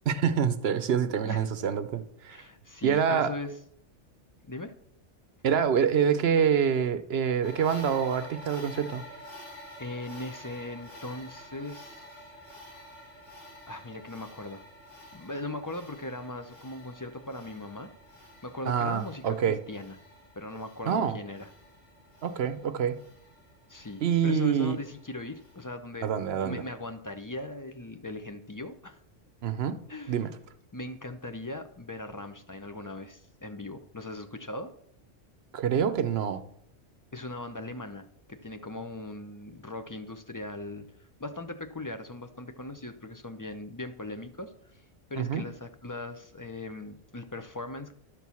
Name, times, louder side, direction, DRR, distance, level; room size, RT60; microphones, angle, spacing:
voice 1, 0.1-2.4 2.8-3.3 5.4-9.0 18.7-19.6 20.9-21.2 22.2-23.0 24.0-24.8 26.0-26.6 29.4-29.8 30.1-30.3 35.5-36.4 45.2-45.4, right 7 dB, 60° right, 11 dB, 0.9 m, -26 dB
voice 2, 2.3-3.6 4.5-4.7 9.8-12.0 13.7-14.6 15.1-17.9 18.4-20.0 20.4-21.5 23.7-26.1 26.3-29.0 29.9-30.2 30.7-34.7 37.1-40.9 41.2-44.8 45.1-47.9, left 2 dB, 30° left, 8 dB, 0.4 m, -39 dB
sound 1, 7.4-25.6, equal, 80° left, 2.3 m, -49 dB
11.5 x 4.6 x 6.9 m, 0.68 s
omnidirectional pair, 1.2 m